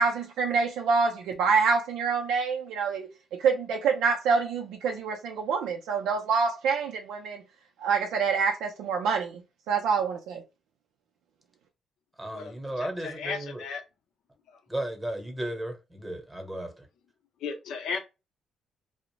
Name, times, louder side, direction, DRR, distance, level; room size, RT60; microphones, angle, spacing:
voice 1, 0.0-3.1 3.4-7.4 7.8-9.4 9.7-10.4, right 5 dB, 90° right, 0.3 m, -26 dB
voice 2, 12.2-13.6 14.7-16.9, right 1 dB, 10° right, 0.9 m, -35 dB
voice 3, 12.8-13.8 17.4-18.0, left 5 dB, 80° left, 0.6 m, -35 dB
2.5 x 2.0 x 3.0 m
cardioid pair, 90°, 0 cm